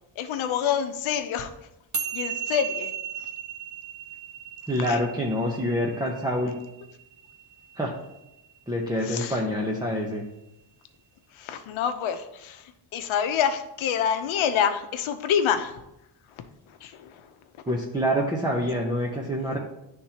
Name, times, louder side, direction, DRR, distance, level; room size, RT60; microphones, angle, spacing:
voice 1, 0.2-1.5 2.1-2.9 4.9-5.0 9.1-9.3 11.4-12.6 12.9-15.7 16.8-17.1, left 8 dB, 80° left, 8 dB, 0.8 m, -26 dB
sound 1, 1.9-8.5, right 8 dB, 35° right, 1.0 m, -36 dB
voice 2, 4.7-6.6 7.8-7.9 8.7-10.2 17.7-19.6, equal, 10° right, -2 dB, 0.8 m, -26 dB
11.0 x 3.7 x 2.9 m, 0.89 s
cardioid pair, 125°, 47 cm